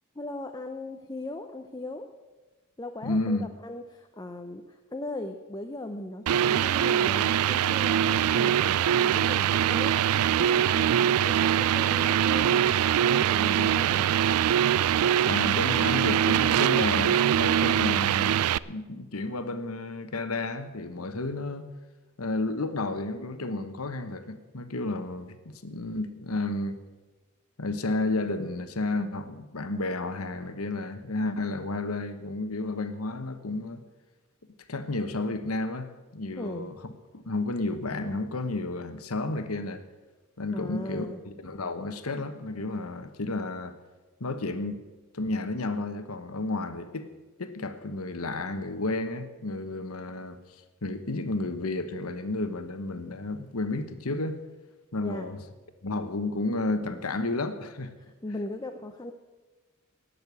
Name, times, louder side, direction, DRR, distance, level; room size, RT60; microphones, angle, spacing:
voice 1, 0.1-2.1 2.8-14.1 36.4-36.7 40.5-41.2 55.0-55.3 58.0-59.1, left 1 dB, 20° left, 5 dB, 0.7 m, -38 dB
voice 2, 3.0-3.5 15.2-21.7 22.2-26.8 27.6-33.8 34.7-36.7 37.1-39.8 40.4-43.8 44.2-44.7 45.1-47.1 47.4-50.4 50.8-54.4 54.9-55.4 55.8-57.9, left 2 dB, 85° left, 10 dB, 1.2 m, -32 dB
sound 1, 6.3-18.6, right 10 dB, 85° right, 0.3 m, -23 dB
18.0 x 6.8 x 8.2 m, 1.2 s
head